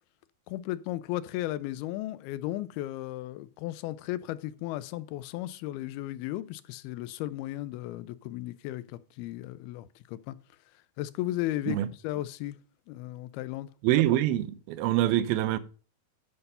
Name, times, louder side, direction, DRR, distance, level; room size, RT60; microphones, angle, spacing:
voice 1, 0.5-10.4 11.0-12.6 12.9-13.7, left 15 dB, 90° left, 2.5 m, -35 dB
voice 2, 13.8-15.6, right 13 dB, 85° right, 2.5 m, -25 dB
10.5 x 5.4 x 5.5 m
omnidirectional pair, 4.3 m